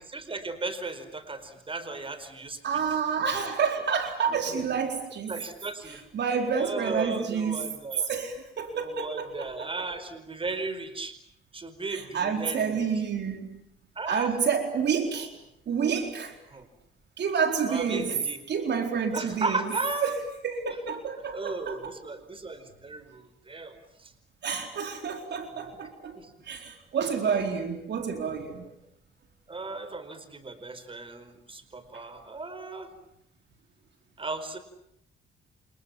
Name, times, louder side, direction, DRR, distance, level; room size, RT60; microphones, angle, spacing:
voice 1, 0.1-2.6 5.3-6.0 6.6-8.1 8.7-11.1 11.5-12.8 13.9-14.3 16.5-16.7 17.7-18.4 19.1-20.2 21.3-24.1 26.1-26.3 29.5-32.9 34.2-34.6, right 3 dB, 25° right, 4.9 m, -35 dB
voice 2, 2.6-5.4 5.8-7.7 8.1-9.9 11.9-13.6 14.1-15.3 15.7-16.4 17.2-18.2 18.5-19.6 20.0-20.2 20.4-21.9 24.4-26.2 26.5-28.7 31.9-32.0, right 6 dB, 60° right, 4.3 m, -29 dB
29.0 x 28.0 x 7.2 m
cardioid pair, 90°, 20 cm